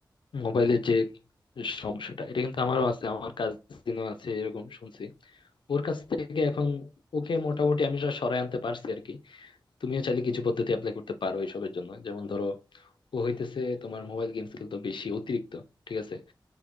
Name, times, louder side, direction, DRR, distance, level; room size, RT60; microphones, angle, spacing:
voice 1, 0.3-1.2 1.6-5.4 5.7-16.3, left 4 dB, 75° left, 0.5 m, -30 dB
4.1 x 3.3 x 3.0 m
wide cardioid pair, 90°, 8 cm